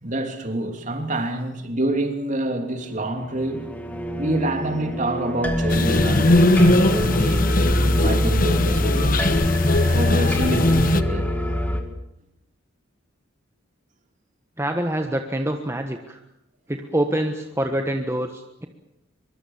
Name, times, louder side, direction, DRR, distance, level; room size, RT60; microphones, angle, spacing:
voice 1, 0.0-3.7 4.2-7.7 8.0-9.4 9.9-11.4, right 1 dB, 40° right, 3.0 m, -27 dB
sound 1, 3.0-11.8, left 1 dB, 10° left, 2.1 m, -24 dB
sound 2, 5.7-11.0, left 1 dB, 45° left, 1.2 m, -20 dB
voice 2, 14.6-16.2 16.7-18.7, right 1 dB, 15° right, 1.3 m, -26 dB
23.5 x 23.5 x 7.3 m
head